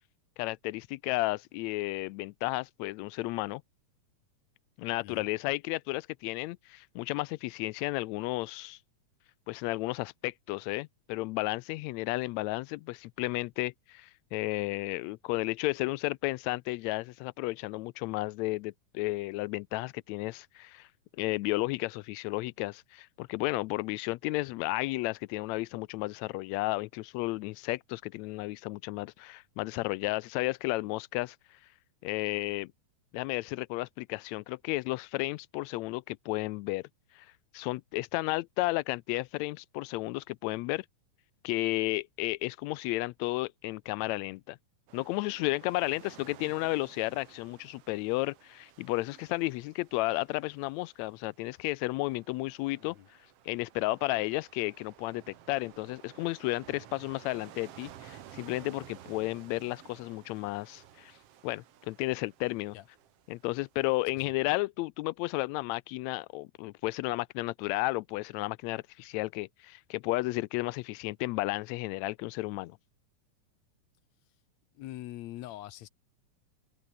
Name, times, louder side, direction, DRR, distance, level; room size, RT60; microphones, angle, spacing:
voice 1, 0.4-3.6 4.8-8.8 9.5-20.9 21.2-31.6 32.0-32.7 33.1-36.8 37.1-37.3 37.5-40.8 41.4-44.6 44.9-53.2 53.4-61.2 61.4-62.7 63.3-72.8, left 20 dB, 90° left, 1.5 m, -33 dB
sound 1, 44.9-64.2, right 11 dB, 60° right, 2.0 m, -54 dB
voice 2, 74.8-75.9, left 15 dB, 70° left, 1.8 m, -43 dB
omnidirectional pair, 3.7 m